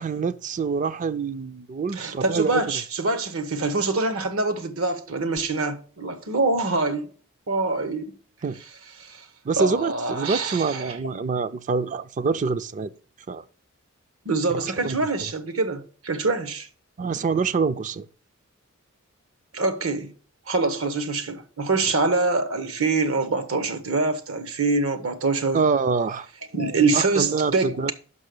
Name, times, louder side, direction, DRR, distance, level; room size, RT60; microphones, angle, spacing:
voice 1, 0.0-2.6 8.4-8.6 9.4-12.9 13.3-13.4 14.8-15.0 17.0-18.1 25.5-26.3 26.9-27.9, right 5 dB, 35° right, 0.4 m, -25 dB
voice 2, 1.9-7.1 7.5-8.1 9.0-9.2 9.6-11.0 14.2-16.7 19.5-20.1 20.5-25.6 26.5-27.9, right 3 dB, 75° right, 1.1 m, -25 dB
6.0 x 5.4 x 6.7 m
head